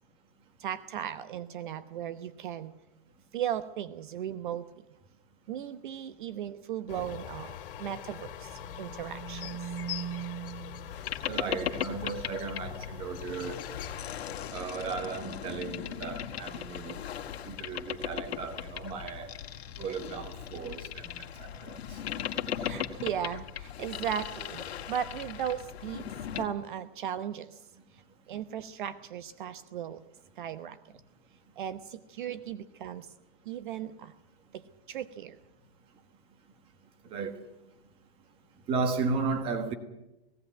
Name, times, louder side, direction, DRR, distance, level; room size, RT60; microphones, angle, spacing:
voice 1, 0.6-2.7 3.3-4.7 5.5-9.6 22.5-27.6 28.3-30.0 30.4-30.8 31.6-33.1 33.5-34.1 34.5-35.4, right 10 dB, 55° right, 0.9 m, -37 dB
sound 1, 6.9-14.5, left 10 dB, 60° left, 2.3 m, -43 dB
sound 2, 8.3-10.9, right 10 dB, ahead, 7.1 m, -40 dB
Boat Water vehicle, 10.9-26.5, left 9 dB, 90° left, 1.8 m, -38 dB
voice 2, 11.3-13.6 14.5-17.0 17.4-19.3 19.8-22.0 37.1-37.3 38.7-39.7, right 4 dB, 20° right, 1.5 m, -35 dB
18.0 x 17.0 x 9.2 m
supercardioid pair, 175°, 30 cm